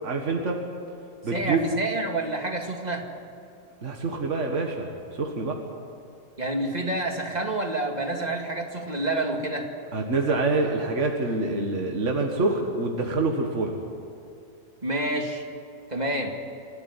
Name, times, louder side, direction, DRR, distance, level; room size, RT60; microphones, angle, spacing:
voice 1, 0.0-0.6 1.2-1.6 3.8-5.6 9.9-13.7, right 3 dB, 65° right, 2 dB, 2.0 m, -26 dB
voice 2, 1.3-3.1 6.4-9.7 14.8-15.4 15.9-16.3, right 2 dB, 30° right, 2 dB, 2.2 m, -28 dB
27.5 x 12.5 x 9.8 m, 2.5 s
omnidirectional pair, 1.3 m